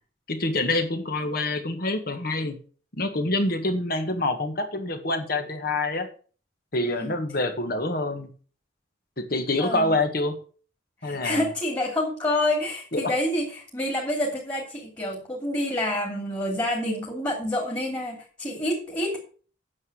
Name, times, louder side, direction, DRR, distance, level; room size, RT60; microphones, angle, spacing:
voice 1, 0.3-2.6 3.0-6.1 6.7-8.3 9.2-10.4 11.0-11.4 12.9-13.1, left 2 dB, 50° left, 7 dB, 1.7 m, -26 dB
voice 2, 6.8-7.1 9.6-9.9 11.0-19.2, left 1 dB, 20° left, -1 dB, 2.7 m, -28 dB
9.6 x 7.2 x 6.3 m, 0.41 s
head